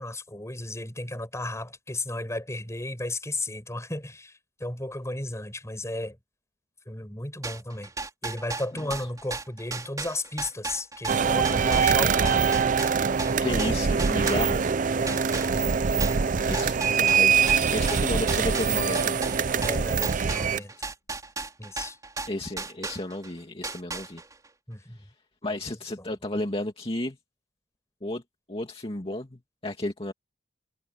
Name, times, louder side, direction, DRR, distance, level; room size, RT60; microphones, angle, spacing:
voice 1, 0.0-6.2 6.8-7.9 8.2-12.5 15.0-15.3 16.2-16.3 19.6-20.7 21.6-22.0 24.7-25.0 25.5-25.6 25.9-26.1, left 2 dB, 15° left, 6.4 m, -34 dB
sound 1, 7.4-14.8 15.1-23.3 23.6-24.5, right 3 dB, 20° right, 3.7 m, -36 dB
sound 2, 11.1-20.6, right 6 dB, 45° right, 0.5 m, -23 dB
voice 2, 13.4-14.6 16.5-19.2 22.3-24.2 25.4-27.2 28.0-28.2 28.5-30.1, left 1 dB, 30° left, 2.3 m, -32 dB
sound 3, 16.9-20.9, left 13 dB, 85° left, 3.5 m, -49 dB
head